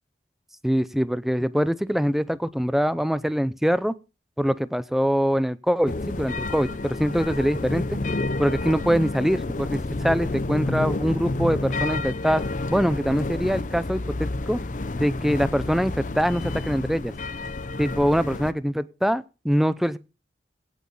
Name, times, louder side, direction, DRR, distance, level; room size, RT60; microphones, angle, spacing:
voice 1, 0.6-3.9 4.4-8.0 8.4-12.4 12.7-14.6 15.0-17.1 17.8-20.0, equal, ahead, 15 dB, 0.6 m, -24 dB
sound 1, 5.9-18.5, left 2 dB, 45° left, 0.7 m, -29 dB
17.0 x 6.4 x 5.5 m, 0.32 s
head